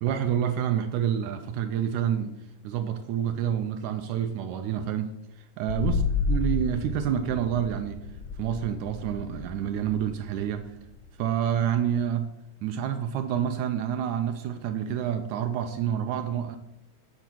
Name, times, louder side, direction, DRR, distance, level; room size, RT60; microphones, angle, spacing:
voice 1, 0.0-2.4 2.6-5.1 5.4-6.0 6.3-8.0 8.4-10.7 11.2-12.3 12.6-16.6, right 9 dB, 80° right, 7 dB, 1.8 m, -28 dB
sound 1, 5.7-11.3, left 4 dB, 90° left, 2.4 m, -31 dB
9.0 x 4.1 x 6.0 m, 0.87 s
omnidirectional pair, 3.6 m